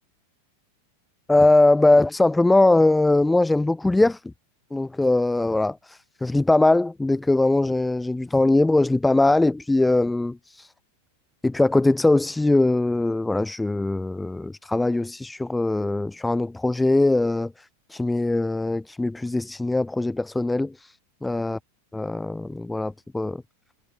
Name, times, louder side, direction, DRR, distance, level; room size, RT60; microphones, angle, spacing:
voice 1, 1.3-4.3 4.7-10.7 11.4-17.5 17.9-20.9 21.2-21.6 21.9-23.4, left 2 dB, 5° left, 0.3 m, -21 dB
figure-of-eight pair, 90°, 0 cm